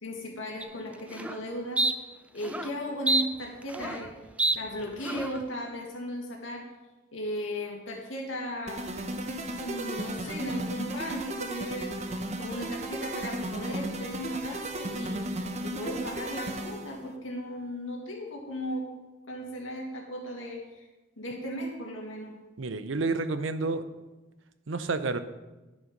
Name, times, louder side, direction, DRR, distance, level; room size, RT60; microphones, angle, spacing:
voice 1, 0.0-1.9 2.3-4.1 4.5-6.7 7.1-9.2 9.6-15.2 15.6-18.9 19.3-20.9 21.2-22.4, equal, 85° left, 0 dB, 2.1 m, -36 dB
Martial Arts U.S. Army Training, 0.6-0.7 1.1-1.4 1.8-1.9 2.4-2.7 3.1-4.1 4.4-4.6 5.0-5.4, right 2 dB, 5° right, 0.3 m, -27 dB
sound 1, 8.7-17.0, right 1 dB, 35° right, 0.8 m, -35 dB
voice 2, 22.6-23.8 24.7-25.2, right 3 dB, 75° right, 11 dB, 0.7 m, -29 dB
11.0 x 6.5 x 5.2 m, 1.2 s
head